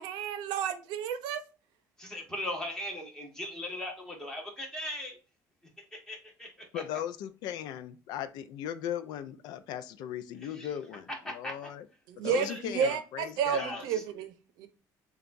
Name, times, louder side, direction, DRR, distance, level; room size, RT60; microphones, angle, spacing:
voice 1, 0.0-1.4 12.1-14.3, right 8 dB, 90° right, 0.7 m, -31 dB
voice 2, 2.0-5.2 5.9-6.8 10.4-10.7 11.1-11.7 12.2-13.0 13.5-14.0, left 1 dB, 10° left, 1.2 m, -39 dB
voice 3, 6.7-11.8 12.2-13.8, left 10 dB, 75° left, 0.5 m, -38 dB
6.7 x 2.4 x 2.5 m
cardioid pair, 155°, 7 cm